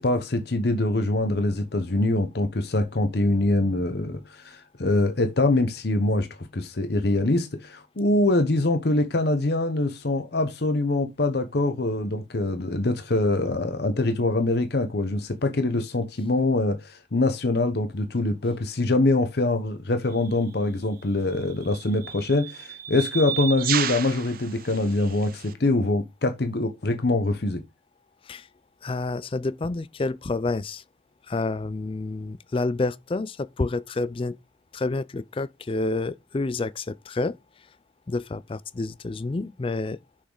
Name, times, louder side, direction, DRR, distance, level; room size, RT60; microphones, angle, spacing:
voice 1, 0.0-27.6, left 2 dB, 55° left, 0.9 m, -24 dB
sound 1, 20.1-20.3 21.3-25.5, right 10 dB, 50° right, 0.7 m, -32 dB
voice 2, 28.8-30.8 31.3-34.4 34.7-37.4 38.1-40.0, left 3 dB, 30° left, 0.4 m, -29 dB
6.3 x 6.3 x 3.8 m
head